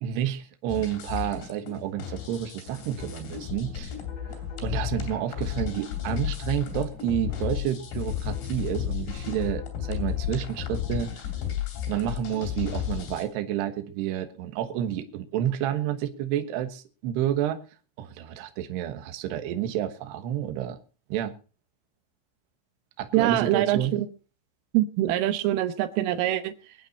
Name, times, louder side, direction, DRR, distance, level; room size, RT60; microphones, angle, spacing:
voice 1, 0.0-3.9 4.6-11.1 11.9-17.6 18.0-20.8 21.1-21.4 23.0-23.9, right 11 dB, 70° right, 3.1 m, -30 dB
sound 1, 0.7-13.3, left 10 dB, 65° left, 4.9 m, -33 dB
sound 2, 2.1-8.2, right 2 dB, 40° right, 7.1 m, -53 dB
voice 2, 23.1-24.1 24.7-26.8, right 14 dB, 85° right, 3.6 m, -24 dB
23.5 x 8.9 x 4.1 m
omnidirectional pair, 5.7 m